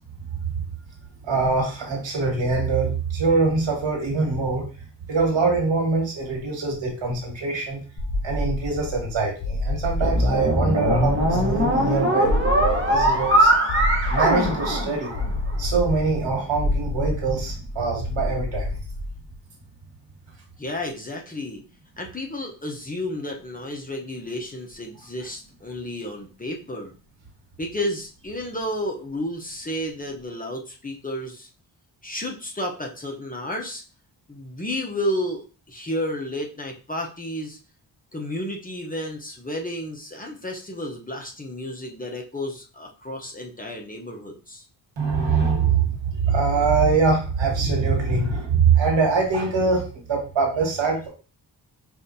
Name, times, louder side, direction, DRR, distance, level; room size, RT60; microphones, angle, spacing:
voice 1, 1.2-4.7 5.1-7.8 8.2-13.5 14.0-15.1 15.6-18.8 45.0-51.1, right 4 dB, 80° right, 0 dB, 1.8 m, -23 dB
sound 1, 8.0-19.3, left 1 dB, 65° left, 1.5 m, -28 dB
sound 2, 10.0-15.5, equal, 25° right, 1.3 m, -21 dB
voice 2, 20.6-21.6 22.0-26.9 27.6-31.5 32.0-33.8 34.3-37.6 38.1-44.6, left 1 dB, 20° left, 0 dB, 0.9 m, -32 dB
5.6 x 2.7 x 2.8 m, 0.35 s
cardioid pair, 70°, 44 cm